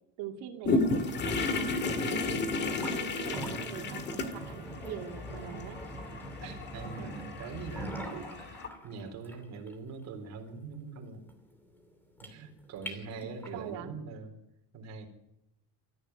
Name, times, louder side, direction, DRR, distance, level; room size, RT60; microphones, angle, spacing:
voice 1, 0.2-2.4 2.8-5.8 12.9-13.9, right 9 dB, 80° right, 4 dB, 2.8 m, -43 dB
sound 1, 0.6-8.7, left 3 dB, 30° left, 1.8 m, -33 dB
voice 2, 1.8-2.1 6.4-11.3 12.2-14.3 14.7-15.1, right 4 dB, 45° right, 4 dB, 3.9 m, -43 dB
sound 2, 2.7-13.7, right 1 dB, 5° left, 2.7 m, -44 dB
22.5 x 14.5 x 9.5 m, 0.87 s
cardioid pair, 175°, 37 cm